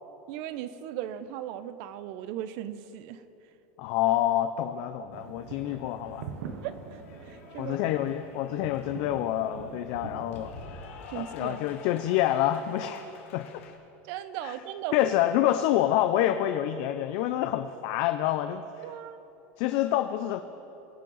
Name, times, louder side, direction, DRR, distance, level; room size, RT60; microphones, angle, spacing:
voice 1, 0.3-3.2 6.6-7.8 11.1-11.6 14.0-14.9 18.8-19.2, right 11 dB, 60° right, 13 dB, 0.7 m, -37 dB
voice 2, 3.8-6.3 7.6-10.6 11.1-13.1 13.3-13.7 14.4-14.5 14.9-18.8 19.6-20.4, left 12 dB, 60° left, 8 dB, 0.5 m, -27 dB
sound 1, 5.1-10.6, right 6 dB, 85° right, 1.1 m, -44 dB
Cheering / Applause, 6.0-13.8, left 5 dB, 90° left, 1.6 m, -49 dB
22.0 x 7.6 x 4.0 m, 3.0 s
supercardioid pair, 145°, 7 cm